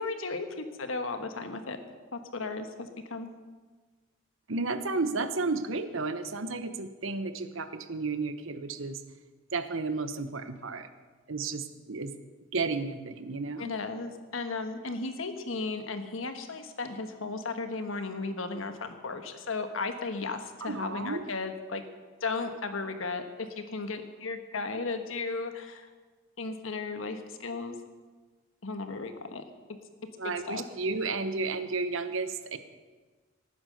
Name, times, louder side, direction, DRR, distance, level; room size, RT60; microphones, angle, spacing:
voice 1, 0.0-1.8 2.1-3.3 13.6-21.8 22.2-25.9 26.4-27.8 28.6-29.4 30.2-30.7, left 3 dB, 80° left, 7 dB, 1.4 m, -35 dB
voice 2, 4.5-9.0 9.5-10.9 11.3-12.1 12.5-13.7 20.6-21.2 30.2-32.6, right 3 dB, 80° right, 10 dB, 1.0 m, -32 dB
18.5 x 9.5 x 6.5 m, 1.4 s
head